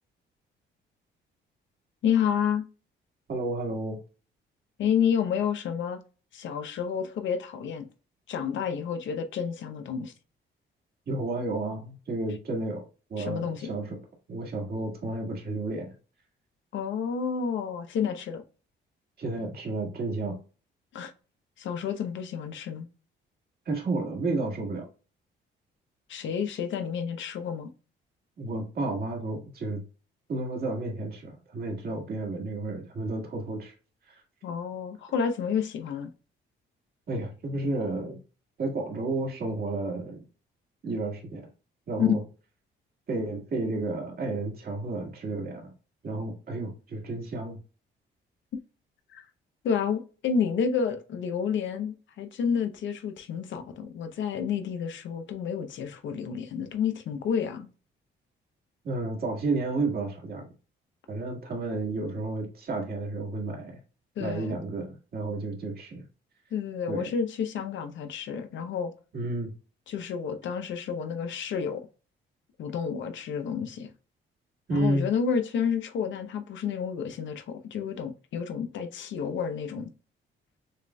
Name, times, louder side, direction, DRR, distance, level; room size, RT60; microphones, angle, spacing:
voice 1, 2.0-2.7 4.8-6.0 6.3-7.9 8.3-10.1 13.2-13.7 16.7-18.4 20.9-21.1 21.6-22.9 26.1-27.7 34.4-36.1 42.0-42.1 49.1-49.3 49.6-57.7 64.2-64.6 66.5-68.9 69.9-71.8 72.6-73.9 74.7-79.9, left 7 dB, 70° left, 0.7 m, -30 dB
voice 2, 3.3-4.0 11.1-12.8 13.1-14.0 14.3-15.9 19.2-20.4 23.6-24.8 28.4-29.8 30.3-33.7 34.1-34.2 37.1-38.2 38.6-40.2 40.8-41.5 41.9-42.2 43.1-45.7 46.0-47.6 58.8-60.4 61.1-63.8 64.2-66.0 66.9-67.1 69.1-69.5 74.7-75.1, right 2 dB, 50° right, 1.7 m, -31 dB
6.5 x 2.5 x 2.2 m
cardioid pair, 90°, 20 cm